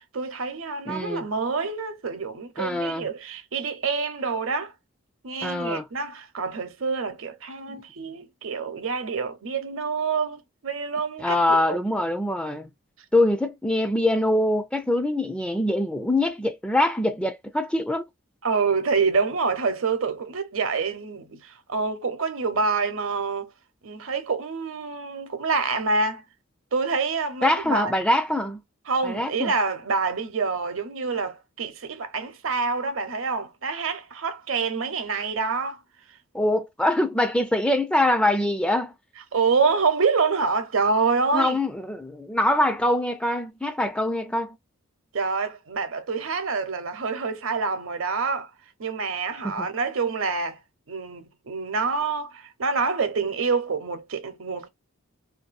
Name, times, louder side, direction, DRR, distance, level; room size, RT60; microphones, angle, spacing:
voice 1, 0.0-4.7 5.2-11.8 18.4-23.5 23.8-26.2 26.7-27.9 28.9-35.8 39.3-41.6 45.1-48.5 48.8-50.6 50.9-54.7, right 4 dB, 75° right, 0.8 m, -27 dB
voice 2, 0.9-1.2 2.6-3.1 5.4-5.9 7.7-7.8 11.2-12.7 13.1-18.0 27.4-28.6 29.0-29.5 36.3-38.9 41.3-44.6 49.4-49.7, left 1 dB, 5° left, 0.3 m, -24 dB
2.7 x 2.6 x 2.4 m
head